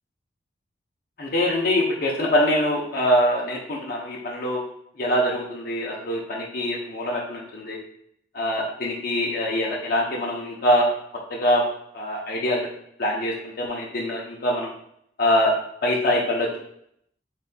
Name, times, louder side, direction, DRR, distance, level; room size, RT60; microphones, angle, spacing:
voice 1, 1.2-4.6 5.0-7.8 8.3-10.9 11.3-11.6 11.9-12.7 13.0-14.7 15.2-15.5 15.8-16.6, left 1 dB, 55° left, -3 dB, 0.6 m, -24 dB
4.0 x 3.3 x 2.2 m, 0.71 s
head